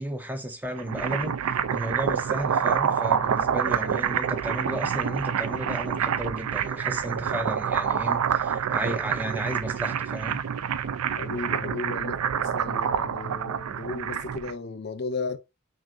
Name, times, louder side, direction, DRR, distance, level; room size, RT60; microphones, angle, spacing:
voice 1, 0.0-10.4, right 1 dB, 10° right, 0.4 m, -33 dB
sound 1, 0.6-14.5, right 8 dB, 90° right, 0.4 m, -27 dB
voice 2, 11.1-15.4, left 3 dB, 50° left, 0.5 m, -34 dB
6.1 x 2.5 x 2.5 m
head